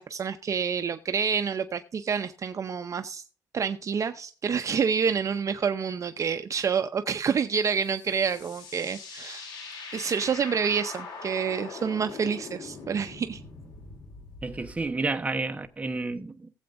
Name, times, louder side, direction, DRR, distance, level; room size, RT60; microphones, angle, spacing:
voice 1, 0.0-3.2 3.5-9.5 9.9-13.4, right 6 dB, 45° right, 0.6 m, -28 dB
sound 1, 7.7-14.9, left 4 dB, 90° left, 3.0 m, -42 dB
voice 2, 14.4-16.5, right 3 dB, 20° right, 1.0 m, -30 dB
18.5 x 7.8 x 2.6 m
cardioid pair, 110°, 7 cm